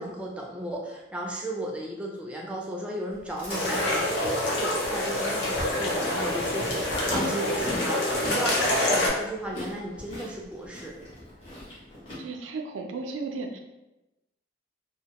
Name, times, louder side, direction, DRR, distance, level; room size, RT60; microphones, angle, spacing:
voice 1, 0.0-11.0, right 1 dB, 5° right, -2 dB, 0.3 m, -35 dB
Chewing mastication, 3.1-12.2, left 1 dB, 30° left, 0.8 m, -39 dB
sound 1, 3.5-9.1, left 1 dB, 70° left, 0.6 m, -27 dB
voice 2, 12.2-13.6, right 3 dB, 90° right, 4 dB, 0.4 m, -34 dB
2.2 x 2.1 x 2.8 m, 0.99 s
head